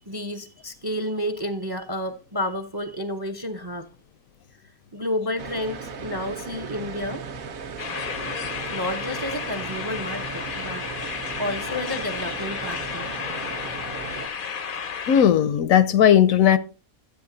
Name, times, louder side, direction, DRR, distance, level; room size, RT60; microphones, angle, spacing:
voice 1, 0.1-3.9 4.9-7.2 8.7-13.1, left 1 dB, 25° right, 0.6 m, -31 dB
sound 1, 5.4-14.3, right 5 dB, 70° right, 1.4 m, -36 dB
sound 2, 7.8-15.2, left 6 dB, 50° left, 0.7 m, -32 dB
voice 2, 15.1-16.6, left 9 dB, 70° left, 1.0 m, -17 dB
12.0 x 8.1 x 3.9 m
omnidirectional pair, 1.6 m